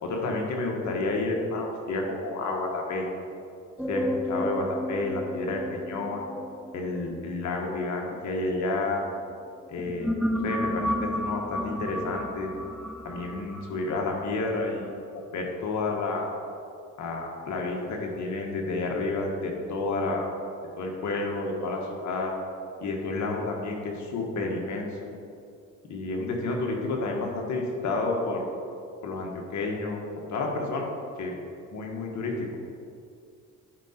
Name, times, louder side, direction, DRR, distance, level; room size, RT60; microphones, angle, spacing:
voice 1, 0.0-3.1 3.9-6.2 6.7-9.0 9.7-10.1 10.4-12.5 13.0-14.8 15.1-16.3 17.0-20.3 20.8-22.3 22.8-25.1 25.9-28.4 29.0-30.0 30.3-30.9 31.2-31.3 31.7-32.5, left 3 dB, 70° left, 0 dB, 1.6 m, -30 dB
sound 1, 3.8-9.1 9.7-14.6, equal, ahead, 0.3 m, -33 dB
11.0 x 4.9 x 4.4 m, 2.5 s
cardioid pair, 90°, 30 cm